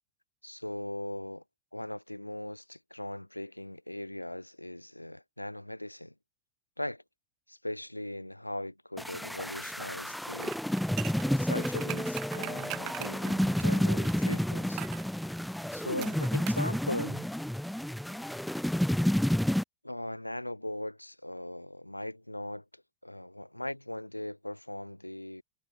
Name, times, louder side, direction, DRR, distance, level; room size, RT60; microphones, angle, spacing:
voice 1, 0.4-1.4 1.7-6.1 6.8-7.0 7.5-10.9 11.2-14.8 15.7-17.3 19.8-25.4, left 1 dB, 85° left, 1.9 m, -39 dB
sound 1, 9.0-19.6, equal, ahead, 0.4 m, -30 dB
sound 2, 10.4-14.2 14.8-15.1 16.0-16.7 16.9-17.0, right 17 dB, 35° right, 1.6 m, -41 dB
figure-of-eight pair, 90°, 0 cm